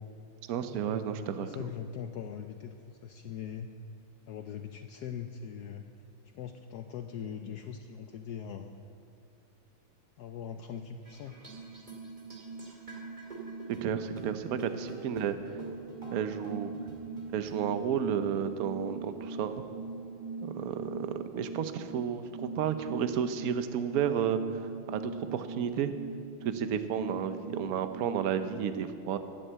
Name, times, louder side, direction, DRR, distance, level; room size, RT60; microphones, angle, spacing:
voice 1, 0.5-1.5 13.8-15.5 16.1-16.7 17.3-19.6 20.4-24.4 24.9-25.9 26.4-29.2, right 8 dB, 65° right, 9 dB, 0.9 m, -32 dB
voice 2, 1.4-3.7 4.3-5.8 6.3-8.7 10.2-11.4, left 8 dB, 80° left, 6 dB, 0.9 m, -41 dB
sound 1, 11.0-20.5, right 3 dB, 20° right, 2.2 m, -49 dB
sound 2, 11.5-28.3, right 4 dB, 45° right, 0.6 m, -42 dB
12.0 x 10.0 x 7.9 m, 2.4 s
omnidirectional pair, 2.3 m